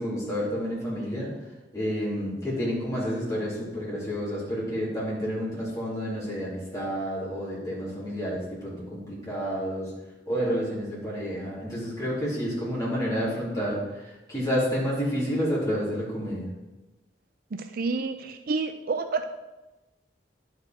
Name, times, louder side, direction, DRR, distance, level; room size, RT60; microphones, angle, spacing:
voice 1, 0.0-1.3 1.7-9.9 10.3-16.5, equal, 20° left, -8 dB, 3.5 m, -30 dB
voice 2, 17.5-19.2, right 4 dB, 55° right, 7 dB, 0.5 m, -29 dB
11.0 x 5.0 x 4.5 m, 1.1 s
head